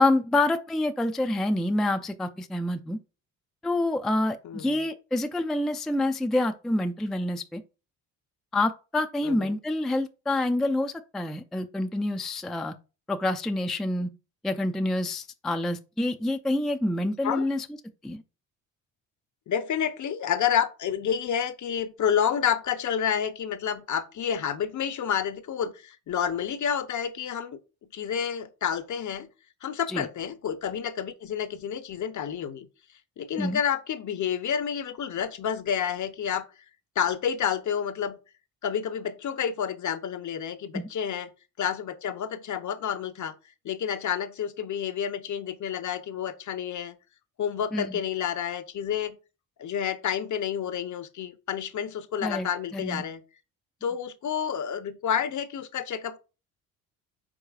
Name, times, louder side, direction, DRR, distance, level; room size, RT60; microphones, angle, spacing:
voice 1, 0.0-3.0 3.6-7.6 8.5-12.7 13.1-14.1 14.4-17.7 18.0-18.2 29.9-30.1 33.4-33.6 40.7-40.9 47.7-47.9 52.2-52.5 52.7-53.0, left 2 dB, ahead, 0.4 m, -27 dB
voice 2, 9.2-9.5 17.2-17.5 19.5-27.6 27.9-29.3 29.6-32.7 33.2-36.5 37.0-38.2 38.6-41.3 41.6-43.3 43.6-47.0 47.4-49.2 49.6-53.2 53.8-56.2, left 8 dB, 45° left, 0.8 m, -29 dB
4.8 x 4.5 x 2.4 m
supercardioid pair, 60°, 41 cm